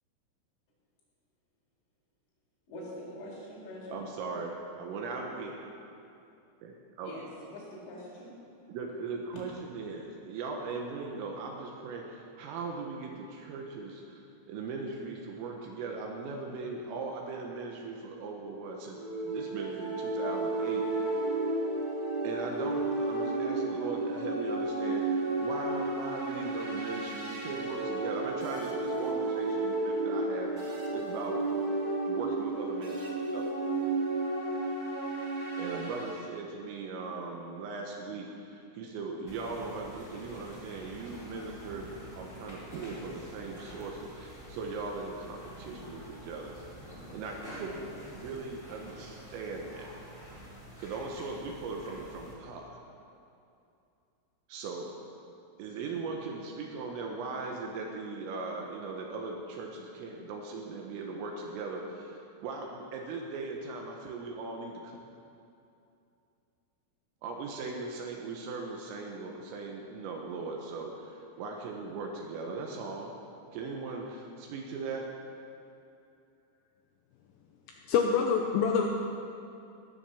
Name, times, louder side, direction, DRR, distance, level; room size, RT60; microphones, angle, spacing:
voice 1, 2.7-4.1 7.0-7.2 7.5-8.3, equal, 60° left, -8 dB, 6.4 m, -44 dB
voice 2, 3.9-5.6 6.6-7.1 8.7-19.0 19.2-21.2 22.2-31.4 32.0-33.4 35.6-46.7 47.1-49.9 50.8-52.8 54.5-54.9 55.6-65.0 67.2-73.1 73.5-75.0, right 3 dB, 80° right, 0 dB, 3.9 m, -39 dB
sound 1, 18.9-36.2, right 2 dB, 40° right, 1.3 m, -32 dB
sound 2, 39.3-52.3, equal, 10° left, 3.2 m, -48 dB
voice 3, 77.7-78.9, left 6 dB, 80° left, 2 dB, 2.6 m, -26 dB
17.5 x 11.0 x 7.3 m, 2.6 s
omnidirectional pair, 6.0 m